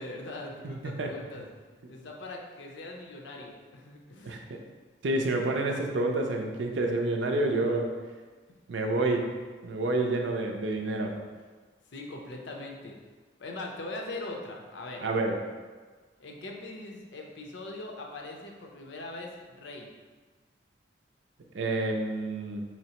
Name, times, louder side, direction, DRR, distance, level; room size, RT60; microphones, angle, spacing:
voice 1, 0.0-1.5 1.9-4.4 11.9-13.0 13.4-15.0 16.2-19.9, left 2 dB, 80° left, 1 dB, 0.6 m, -41 dB
voice 2, 0.6-1.1 4.2-4.4 5.0-7.9 8.7-9.4 9.6-11.2 15.0-15.4 21.5-22.6, right 2 dB, 80° right, 3 dB, 0.5 m, -28 dB
4.4 x 3.2 x 2.9 m, 1.4 s
head